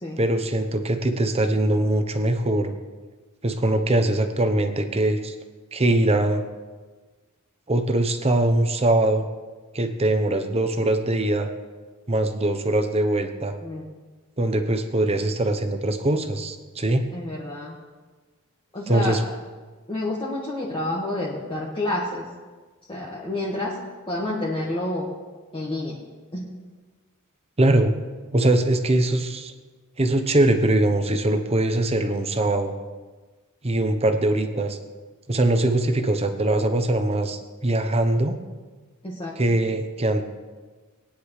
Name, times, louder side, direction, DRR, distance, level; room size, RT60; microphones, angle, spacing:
voice 1, 0.2-2.7 3.4-5.3 5.7-6.4 7.7-9.3 9.7-11.5 12.1-13.5 14.4-17.1 18.9-19.2 27.6-27.9 28.3-29.5 30.0-32.7 33.6-34.8 35.3-38.4 39.4-40.2, right 1 dB, 30° right, 7 dB, 0.9 m, -22 dB
voice 2, 17.1-17.7 18.7-19.2 19.9-22.2 22.9-23.8 24.1-25.1 25.5-26.0 26.3-26.4 39.0-39.3, left 1 dB, 25° left, -6 dB, 1.6 m, -29 dB
19.5 x 10.0 x 3.3 m, 1.3 s
head